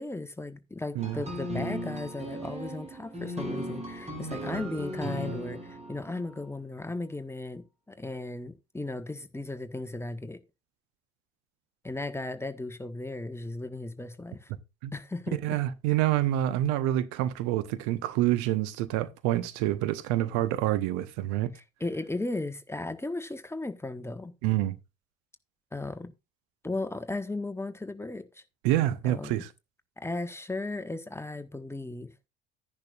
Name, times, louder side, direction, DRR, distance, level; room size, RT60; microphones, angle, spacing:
voice 1, 0.0-10.4 11.8-14.5 14.9-15.6 21.5-24.3 25.7-26.1 26.6-28.4 29.0-29.3 30.0-32.1, left 2 dB, 10° left, 1.2 m, -36 dB
sound 1, 1.0-6.4, equal, 20° right, 3.7 m, -36 dB
voice 2, 15.4-21.5 24.4-24.8 28.6-29.5, right 14 dB, 60° right, 1.0 m, -27 dB
12.0 x 10.5 x 2.5 m
figure-of-eight pair, 60°, 33 cm